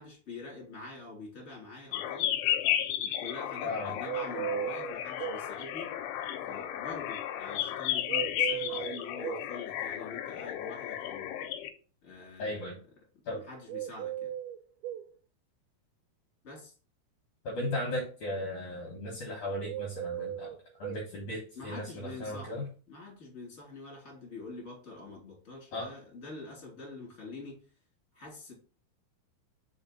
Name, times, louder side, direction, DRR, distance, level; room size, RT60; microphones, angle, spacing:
voice 1, 0.0-2.3 3.0-5.9 6.4-11.5 12.0-12.8 13.3-14.3 16.4-16.7 21.5-27.6 28.1-28.5, left 3 dB, 20° left, -3 dB, 2.5 m, -45 dB
sound 1, 1.9-11.7, left 11 dB, 85° left, 2.7 m, -33 dB
voice 2, 3.6-3.9 12.4-12.8 13.3-13.4 17.4-20.5 20.8-22.7 25.7-25.9, left 1 dB, 60° left, -2 dB, 2.3 m, -36 dB
sound 2, 4.0-5.5 8.1-9.5 13.7-15.1 19.7-21.0, right 11 dB, 80° right, 2.3 m, -36 dB
5.5 x 4.3 x 4.1 m, 0.39 s
omnidirectional pair, 4.6 m